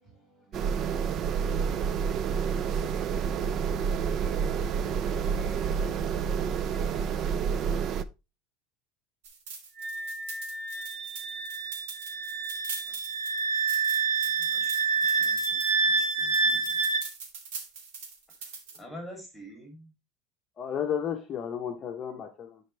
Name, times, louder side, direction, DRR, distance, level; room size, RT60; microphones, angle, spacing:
voice 1, 0.0-0.1, right 2 dB, 25° right, 4.5 m, -59 dB
sound 1, 0.5-8.0, right 7 dB, 40° right, 0.5 m, -29 dB
sound 2, 9.2-18.8, right 5 dB, 80° right, 2.2 m, -42 dB
Wind instrument woodwind instrument, 9.8-17.0, right 4 dB, 60° right, 1.5 m, -28 dB
voice 2, 14.2-16.8 18.8-19.9, equal, 5° left, 2.9 m, -47 dB
voice 3, 20.6-22.6, left 8 dB, 30° left, 0.9 m, -33 dB
10.0 x 4.3 x 3.3 m
supercardioid pair, 135°, 0 cm